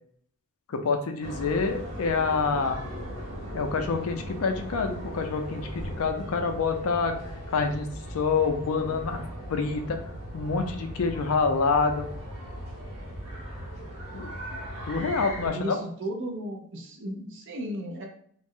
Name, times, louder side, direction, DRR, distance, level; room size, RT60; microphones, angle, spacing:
voice 1, 0.7-2.8 3.5-7.2 7.5-9.2 9.5-10.0 10.3-12.1 14.1-14.3 14.9-15.8, left 4 dB, 70° left, 6 dB, 0.4 m, -27 dB
sound 1, 1.2-15.5, equal, 75° right, 1.0 m, -38 dB
voice 2, 15.4-18.1, equal, 55° right, 2 dB, 0.5 m, -35 dB
2.4 x 2.1 x 3.5 m, 0.63 s
head